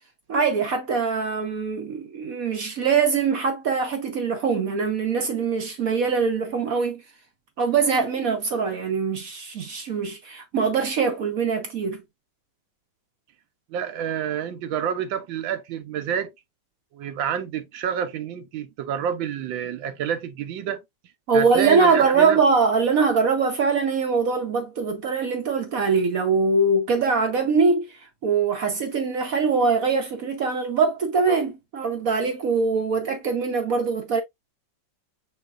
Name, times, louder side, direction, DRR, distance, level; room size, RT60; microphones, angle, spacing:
voice 1, 0.3-7.0 7.6-12.0 21.3-34.2, right 4 dB, 60° right, 1.0 m, -23 dB
voice 2, 13.7-16.3 16.9-20.8 21.3-22.4, right 8 dB, 85° right, 1.4 m, -28 dB
5.4 x 4.0 x 2.3 m
omnidirectional pair, 2.1 m